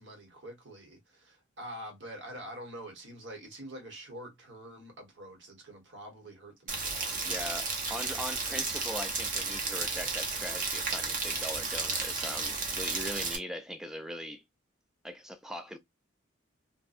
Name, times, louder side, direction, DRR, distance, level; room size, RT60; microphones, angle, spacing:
voice 1, 0.0-7.4, right 1 dB, 65° right, 1.1 m, -46 dB
Rain, 6.7-13.4, right 4 dB, 40° right, 0.7 m, -33 dB
voice 2, 7.2-14.4 15.0-15.8, equal, 5° right, 0.3 m, -40 dB
2.7 x 2.2 x 2.4 m
head